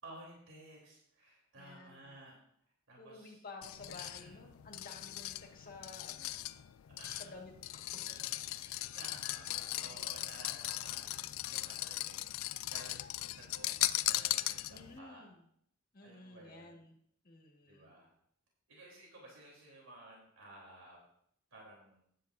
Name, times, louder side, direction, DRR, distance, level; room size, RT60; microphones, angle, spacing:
voice 1, 0.0-2.4 2.9-3.4 3.9-4.4 6.3-6.4 7.0-7.3 8.0-12.3 12.7-15.2 16.0-16.8 17.6-18.1 18.7-21.0 21.5-22.0, right 1 dB, 75° right, -2 dB, 3.6 m, -55 dB
voice 2, 1.5-2.2 3.0-6.5 7.2-8.2 9.5-10.4 14.7-15.4 15.9-17.0 17.2-17.9, left 3 dB, 45° left, 1 dB, 1.8 m, -53 dB
sound 1, 3.6-15.0, left 15 dB, 80° left, 0.4 m, -38 dB
15.5 x 10.0 x 2.7 m, 0.69 s
head